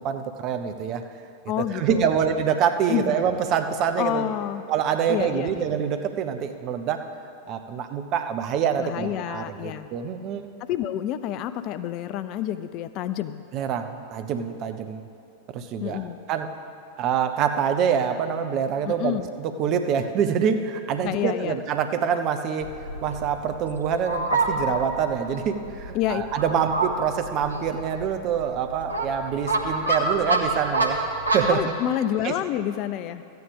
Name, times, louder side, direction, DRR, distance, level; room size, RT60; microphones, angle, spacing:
voice 1, 0.0-1.0 1.6-4.3 4.7-7.1 7.5-10.5 13.5-15.0 15.5-16.0 16.3-16.5 17.0-22.7 23.0-31.0 31.3-31.6 32.2-32.3, right 7 dB, 40° right, 8 dB, 0.7 m, -26 dB
voice 2, 1.5-2.2 2.9-3.2 4.0-4.6 5.1-5.6 8.8-9.9 10.6-13.4 15.8-16.2 18.9-19.3 21.0-21.6 25.9-26.2 31.5-33.2, left 11 dB, 40° left, 11 dB, 0.4 m, -28 dB
Fowl, 22.6-31.6, right 2 dB, 80° right, 1.0 m, -28 dB
14.0 x 9.2 x 3.6 m, 2.8 s
figure-of-eight pair, 90°, 0 cm